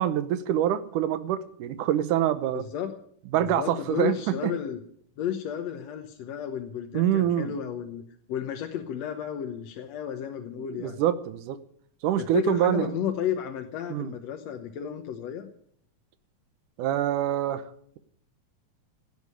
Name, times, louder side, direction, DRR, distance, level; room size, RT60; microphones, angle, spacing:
voice 1, 0.0-2.6 3.3-4.5 6.9-7.5 10.6-11.6 12.0-12.9 13.9-14.1 16.8-17.6, right 11 dB, 90° right, 13 dB, 2.5 m, -25 dB
voice 2, 2.5-2.9 3.3-4.8 5.2-8.0 8.3-11.0 12.2-15.5, left 9 dB, 65° left, 5 dB, 2.0 m, -33 dB
16.5 x 8.3 x 9.4 m, 0.65 s
omnidirectional pair, 3.5 m